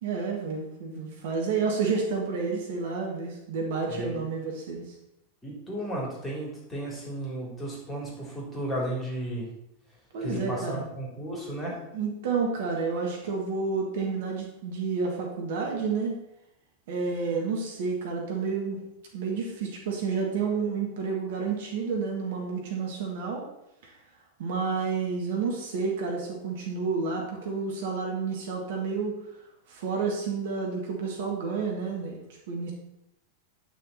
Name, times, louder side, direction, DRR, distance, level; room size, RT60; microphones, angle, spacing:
voice 1, 0.0-4.9 10.1-10.8 11.9-16.2 16.9-18.8 19.1-23.4 23.8-23.9 24.4-29.1 29.7-32.2 32.5-32.7, right 5 dB, 55° right, 0 dB, 1.9 m, -30 dB
voice 2, 3.9-4.3 5.4-9.5 10.2-11.8, right 1 dB, 15° left, -3 dB, 3.5 m, -34 dB
9.7 x 6.3 x 4.3 m, 0.84 s
figure-of-eight pair, 90°, 0 cm